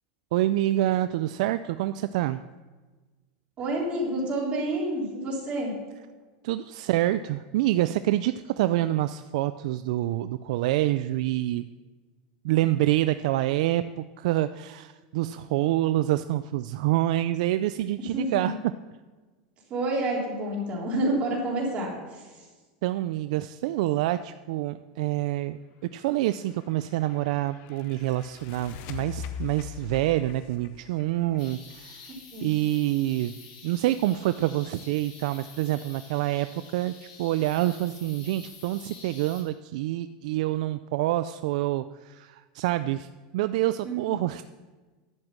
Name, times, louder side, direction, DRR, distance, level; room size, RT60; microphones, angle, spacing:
voice 1, 0.3-2.4 6.4-11.7 12.4-18.6 22.8-25.6 25.9-32.0 32.4-33.4 33.6-36.5 36.7-44.4, right 15 dB, 65° right, 12 dB, 0.3 m, -27 dB
voice 2, 3.6-5.7 18.1-18.6 19.7-22.2 32.3-32.5 43.8-44.0, right 1 dB, 30° right, -3 dB, 3.6 m, -28 dB
sound 1, 26.3-32.1, left 8 dB, 45° left, 0.8 m, -42 dB
sound 2, 31.4-39.4, left 5 dB, 85° left, 3.6 m, -48 dB
10.5 x 8.1 x 7.4 m, 1.3 s
supercardioid pair, 160°, 4 cm